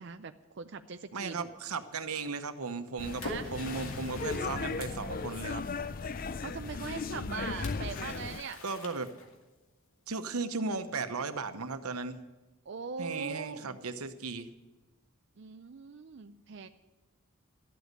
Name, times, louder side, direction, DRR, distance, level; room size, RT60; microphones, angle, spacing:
voice 1, 0.0-1.5 3.2-3.6 6.4-8.6 12.7-13.8 15.4-16.7, right 5 dB, 55° right, 8 dB, 0.4 m, -41 dB
voice 2, 1.1-3.2 3.5-5.7 8.6-9.1 10.1-12.2 13.0-14.5, right 4 dB, 85° right, 10 dB, 1.0 m, -36 dB
Splash splatter, 2.7-5.8 7.6-9.6, left 2 dB, 65° left, 2.3 m, -45 dB
sound 1, 3.0-8.4, left 4 dB, 40° left, 0.4 m, -36 dB
12.5 x 8.2 x 9.3 m, 1.1 s
head